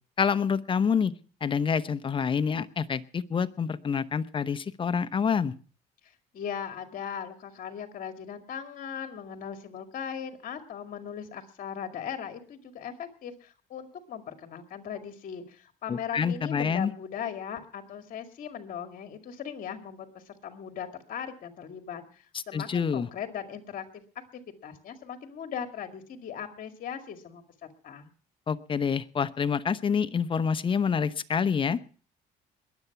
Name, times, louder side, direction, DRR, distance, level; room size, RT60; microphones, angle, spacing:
voice 1, 0.2-1.1 1.4-5.5 15.9-16.9 22.5-23.1 28.5-31.8, left 6 dB, 30° left, 13 dB, 0.9 m, -27 dB
voice 2, 6.0-24.0 24.6-28.1, left 8 dB, 55° left, 6 dB, 2.0 m, -39 dB
21.5 x 8.1 x 5.9 m, 0.41 s
cardioid pair, 110°, 17 cm